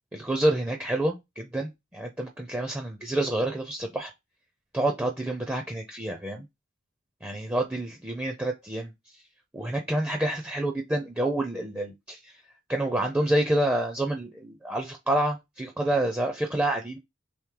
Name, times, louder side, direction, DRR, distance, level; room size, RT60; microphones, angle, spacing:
voice 1, 0.1-4.1 4.7-6.5 7.2-8.9 9.5-12.3 12.7-17.0, right 1 dB, 10° right, 0.5 m, -28 dB
3.5 x 3.1 x 4.7 m
head